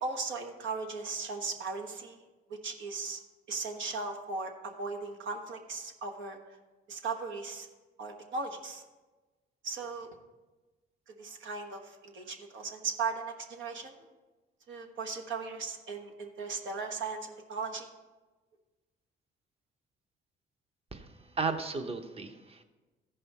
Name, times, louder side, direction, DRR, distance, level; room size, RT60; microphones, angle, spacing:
voice 1, 0.0-2.2 2.5-3.2 3.5-6.4 6.9-7.7 8.0-8.8 9.6-10.1 11.2-13.9 14.7-17.9, right 4 dB, 75° right, 3 dB, 1.3 m, -37 dB
voice 2, 20.9-22.6, right 4 dB, 30° right, 7 dB, 0.9 m, -35 dB
14.5 x 5.5 x 4.2 m, 1.2 s
cardioid pair, 90°, 20 cm